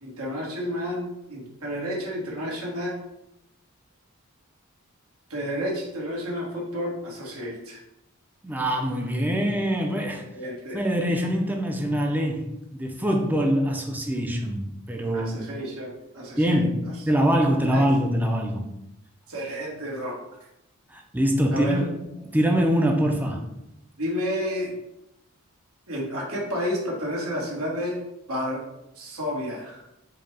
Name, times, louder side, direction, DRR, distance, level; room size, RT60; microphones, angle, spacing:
voice 1, 0.0-2.9 5.3-7.8 10.3-10.8 15.1-16.6 17.7-17.9 19.3-20.2 21.5-21.9 24.0-24.7 25.9-28.0 28.3-28.6 29.0-29.8, equal, 90° right, -3 dB, 1.6 m, -31 dB
voice 2, 8.4-10.3 10.7-15.5 16.4-18.7 20.9-23.5, equal, 10° right, 2 dB, 0.5 m, -24 dB
4.7 x 2.2 x 4.7 m, 0.83 s
head